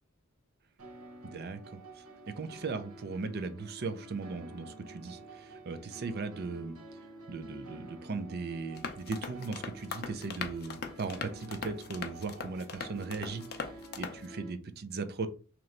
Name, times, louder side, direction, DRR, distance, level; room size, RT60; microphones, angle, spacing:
sound 1, 0.8-14.5, right 2 dB, 85° right, 1.1 m, -49 dB
voice 1, 1.2-6.8 7.3-15.3, right 4 dB, 45° right, 10 dB, 0.5 m, -38 dB
sound 2, 8.8-14.3, left 5 dB, 45° left, 0.5 m, -41 dB
3.1 x 3.0 x 3.8 m, 0.35 s
head